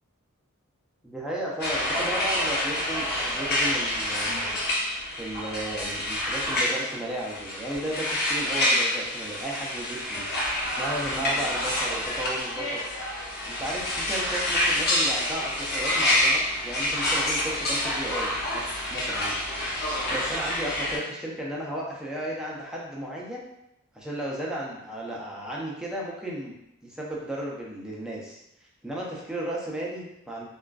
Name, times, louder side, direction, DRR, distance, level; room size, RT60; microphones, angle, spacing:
voice 1, 1.0-4.6 5.2-12.8 13.4-19.4 20.1-23.4 23.9-26.5 26.8-28.4 28.8-30.5, right 1 dB, 5° right, -4 dB, 0.4 m, -34 dB
sound 1, 1.6-21.0, left 1 dB, 45° left, 0.6 m, -27 dB
2.4 x 2.3 x 2.2 m, 0.85 s
head